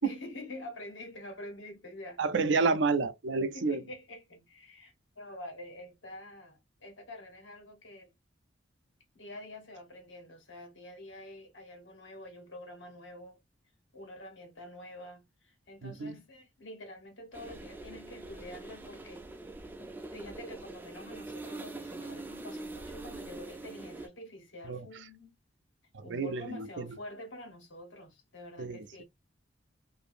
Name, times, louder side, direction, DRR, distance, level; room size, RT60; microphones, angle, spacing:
voice 1, 0.0-2.2 3.5-8.1 9.1-13.4 13.9-19.3 20.1-25.3 26.0-29.0, left 1 dB, 80° left, 1.3 m, -47 dB
voice 2, 2.2-3.8 15.8-16.2 24.6-24.9 25.9-26.9 28.6-29.0, right 4 dB, 70° right, 0.5 m, -30 dB
sound 1, 17.3-24.1, right 2 dB, 10° right, 0.4 m, -44 dB
2.7 x 2.6 x 2.5 m
head